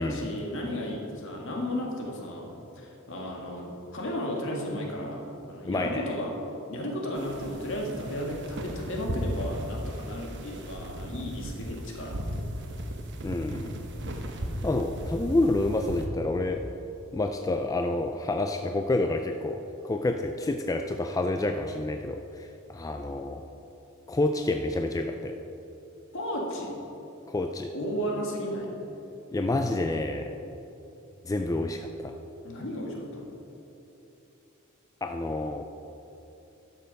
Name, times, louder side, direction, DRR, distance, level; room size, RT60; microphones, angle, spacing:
voice 1, 0.0-6.4 6.7-12.4 26.1-26.8 27.7-28.7 32.4-33.2, equal, 60° left, -1 dB, 1.8 m, -34 dB
voice 2, 5.6-6.1 13.2-13.7 14.6-16.6 17.1-23.5 24.1-25.3 27.3-27.7 29.3-30.4 31.2-32.1 35.0-35.7, left 2 dB, 15° left, 5 dB, 0.3 m, -28 dB
sound 1, 7.2-16.1, equal, 55° right, 1.0 m, -36 dB
12.0 x 6.8 x 5.3 m, 2.9 s
head